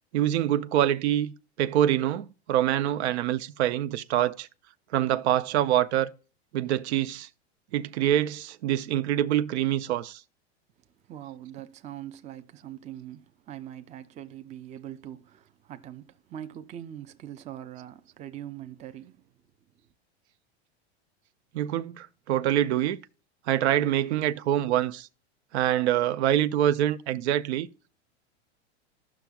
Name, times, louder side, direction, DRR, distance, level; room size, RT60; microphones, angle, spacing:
voice 1, 0.1-1.3 1.6-4.5 4.9-6.1 6.5-7.3 7.7-10.2 21.5-23.0 23.5-25.1 25.5-27.7, right 11 dB, 75° right, 0.6 m, -25 dB
voice 2, 11.1-19.2, right 11 dB, 20° right, 0.4 m, -42 dB
15.5 x 5.9 x 2.4 m
supercardioid pair, 120°, 33 cm